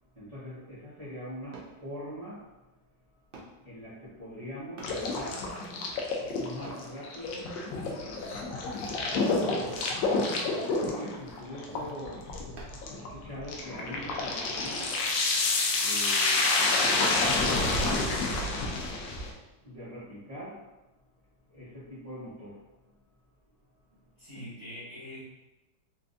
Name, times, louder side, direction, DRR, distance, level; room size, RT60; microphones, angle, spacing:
voice 1, 0.1-2.5 3.6-5.5 6.3-7.6 8.1-8.6 8.9-14.9 15.8-18.4 19.6-20.7 21.5-22.9, equal, 30° right, -13 dB, 0.8 m, -43 dB
sound 1, 1.5-1.8 3.3-3.6 4.8-5.0 6.6-6.9 7.9-8.2 9.1-9.3 10.5-10.8 12.6-12.9 14.8-15.0 17.2-17.4 18.0-18.1, right 2 dB, 75° right, 0.5 m, -46 dB
sound 2, 4.8-19.3, left 3 dB, 80° left, 1.3 m, -29 dB
voice 2, 24.2-25.2, left 1 dB, 20° left, -10 dB, 1.2 m, -43 dB
4.5 x 2.5 x 2.5 m, 1.0 s
omnidirectional pair, 2.0 m